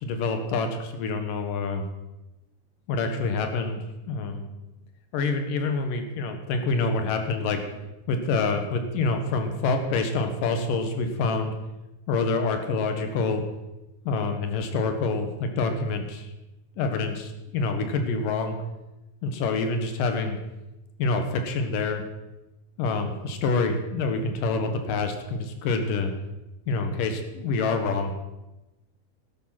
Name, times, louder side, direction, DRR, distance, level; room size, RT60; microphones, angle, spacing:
voice 1, 0.0-1.9 2.9-4.5 5.1-7.8 8.1-11.5 12.1-13.4 14.0-16.3 16.8-18.6 19.2-20.4 21.0-22.0 22.8-26.1 26.7-28.1, left 3 dB, 75° left, 6 dB, 3.0 m, -27 dB
13.0 x 11.5 x 5.9 m, 0.99 s
omnidirectional pair, 3.9 m